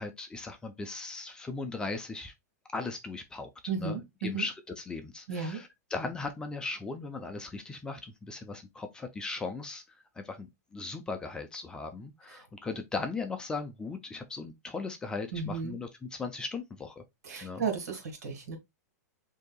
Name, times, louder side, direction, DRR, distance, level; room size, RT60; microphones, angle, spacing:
voice 1, 0.0-2.3 2.7-3.5 3.8-9.8 10.2-17.0 17.4-17.6, left 3 dB, 10° left, 0.4 m, -38 dB
voice 2, 3.7-4.4 5.3-5.6 12.3-12.4 15.3-15.8 17.2-18.6, right 5 dB, 70° right, 1.8 m, -34 dB
6.4 x 2.8 x 2.3 m
hypercardioid pair, 155°, 9 cm